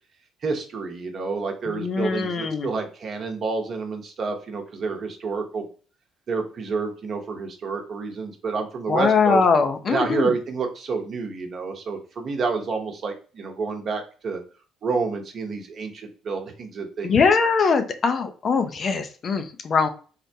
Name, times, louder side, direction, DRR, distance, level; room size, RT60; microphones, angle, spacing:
voice 1, 0.4-5.7 6.3-9.4 9.9-14.4 14.8-17.5, right 4 dB, 50° right, 4 dB, 0.8 m, -29 dB
voice 2, 1.7-2.7 8.9-10.3 17.0-19.9, left 5 dB, 50° left, 8 dB, 0.5 m, -21 dB
4.1 x 2.1 x 2.7 m, 0.38 s
hypercardioid pair, 50°, 0 cm